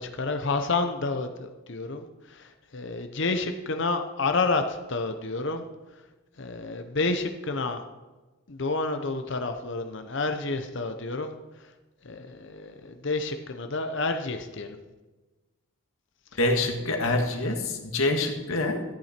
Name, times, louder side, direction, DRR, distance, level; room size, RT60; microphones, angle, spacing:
voice 1, 0.0-5.6 6.4-7.8 8.5-11.3 12.0-14.8, left 3 dB, 55° left, 7 dB, 0.8 m, -29 dB
voice 2, 16.4-18.8, left 2 dB, 75° left, 3 dB, 1.7 m, -26 dB
14.0 x 8.9 x 4.4 m, 1.2 s
head